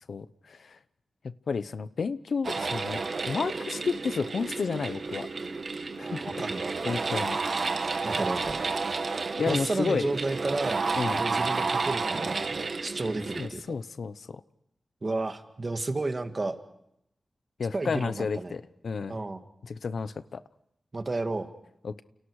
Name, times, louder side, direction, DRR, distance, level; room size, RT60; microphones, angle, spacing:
voice 1, 0.1-0.8 1.2-5.3 6.0-6.4 6.8-7.4 9.4-10.1 11.0-11.2 13.4-14.4 17.6-19.1 19.6-20.4 21.8-22.0, left 5 dB, 75° left, 14 dB, 0.8 m, -31 dB
sound 1, 2.4-13.5, right 4 dB, 55° right, 1.9 m, -31 dB
voice 2, 6.0-6.8 8.0-8.6 9.5-10.9 11.2-13.8 15.0-16.6 17.7-18.5 19.1-19.4 20.9-21.5, right 2 dB, 35° right, 7 dB, 2.0 m, -32 dB
30.0 x 29.5 x 4.9 m, 0.78 s
wide cardioid pair, 110°, 0 cm